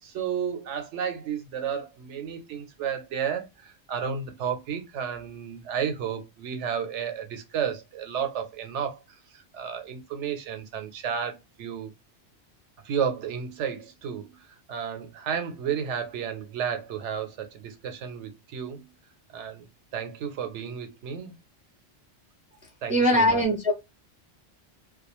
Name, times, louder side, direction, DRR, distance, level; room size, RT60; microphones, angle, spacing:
voice 1, 0.0-9.0 9.3-11.9 12.8-18.9 19.3-21.3 22.8-23.4, right 7 dB, 85° right, 1.0 m, -32 dB
voice 2, 22.9-23.7, equal, 15° right, 0.3 m, -21 dB
2.4 x 2.2 x 2.9 m
omnidirectional pair, 1.2 m